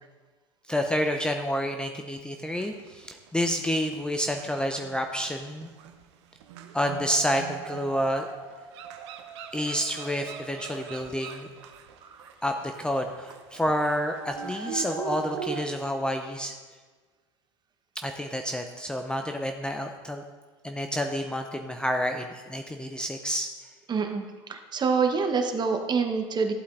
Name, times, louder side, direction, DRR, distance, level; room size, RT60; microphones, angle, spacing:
voice 1, 0.7-5.7 6.7-8.3 9.5-11.5 12.4-16.6 18.0-20.2 20.6-23.5, equal, 5° left, 4 dB, 0.6 m, -29 dB
sound 1, 2.5-3.6 3.9-15.7, right 7 dB, 65° right, 0.9 m, -40 dB
voice 2, 23.9-24.2 24.5-26.5, right 5 dB, 30° right, 5 dB, 1.1 m, -26 dB
14.0 x 8.2 x 2.6 m, 1.4 s
hypercardioid pair, 80°, 15 cm